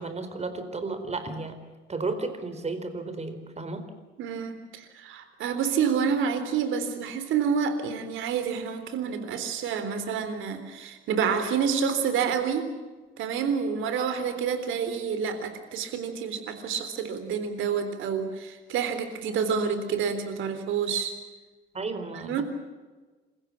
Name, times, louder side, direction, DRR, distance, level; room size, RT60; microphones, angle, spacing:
voice 1, 0.0-1.6 1.9-3.9 21.7-22.4, right 3 dB, 35° right, 9 dB, 4.3 m, -33 dB
voice 2, 4.2-12.7 13.2-21.1 22.1-22.4, right 6 dB, 85° right, 9 dB, 3.7 m, -28 dB
28.0 x 15.5 x 8.6 m, 1.3 s
cardioid pair, 90°, 20 cm